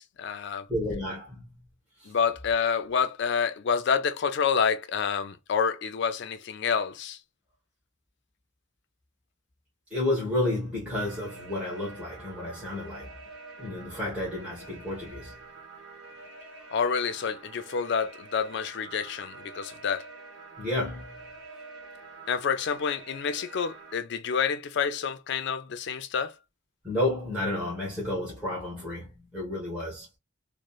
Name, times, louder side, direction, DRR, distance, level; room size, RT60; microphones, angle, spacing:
voice 1, 0.0-0.7 2.1-7.2 16.7-20.1 22.3-26.3, left 6 dB, 60° left, 0.4 m, -28 dB
voice 2, 0.7-1.7 2.0-2.1 9.9-13.1 13.6-15.4 20.6-21.3 26.8-30.1, left 1 dB, 5° right, 1.1 m, -31 dB
sound 1, 11.0-23.9, right 3 dB, 60° right, 1.3 m, -47 dB
3.0 x 2.0 x 2.3 m
head